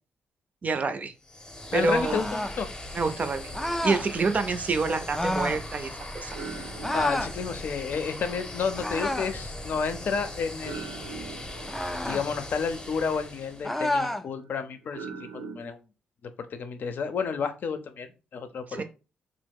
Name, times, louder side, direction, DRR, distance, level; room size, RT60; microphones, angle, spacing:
voice 1, 0.6-1.1 1.7-2.2 2.9-6.4 18.7-18.8, right 4 dB, 45° right, 9 dB, 0.5 m, -27 dB
sound 1, 1.2-13.9, left 1 dB, 25° left, 0.8 m, -40 dB
voice 2, 1.7-2.7 6.9-11.0 12.0-15.8 16.2-18.8, left 5 dB, 60° left, 9 dB, 0.6 m, -31 dB
sound 2, 2.0-2.6 3.5-4.1 5.1-5.6 6.8-7.4 8.8-9.4 11.7-12.3 13.6-14.3, left 1 dB, 5° left, 0.4 m, -29 dB
sound 3, 3.4-5.9 6.3-15.6, right 4 dB, 90° right, 0.9 m, -45 dB
2.9 x 2.1 x 3.5 m, 0.31 s
supercardioid pair, 55°, 4 cm